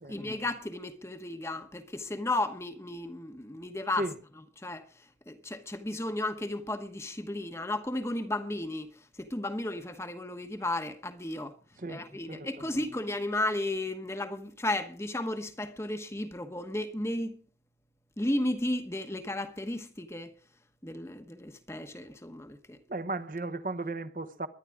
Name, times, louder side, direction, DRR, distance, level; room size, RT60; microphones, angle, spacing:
voice 1, 0.1-4.1 4.6-11.6 11.9-17.4 18.2-20.3 20.8-22.8, left 1 dB, 15° left, 1.0 m, -34 dB
voice 2, 11.8-12.8 22.9-24.5, right 2 dB, 50° right, 1.0 m, -36 dB
22.5 x 11.0 x 3.5 m
head